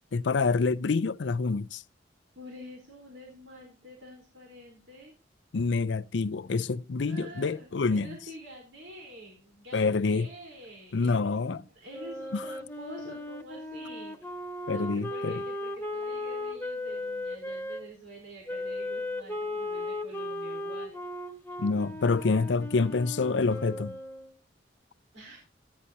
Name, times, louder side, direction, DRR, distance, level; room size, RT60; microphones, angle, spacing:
voice 1, 0.1-1.8 5.5-8.2 9.7-10.3 10.9-11.6 12.3-12.4 14.7-15.4 21.6-24.0, left 4 dB, 75° left, 0.5 m, -27 dB
voice 2, 2.3-5.1 7.0-14.3 14.7-20.9 25.1-25.4, equal, 85° right, 4.1 m, -47 dB
Wind instrument woodwind instrument, 11.9-17.8 18.5-24.3, left 1 dB, 10° left, 1.4 m, -36 dB
15.0 x 10.0 x 2.8 m
head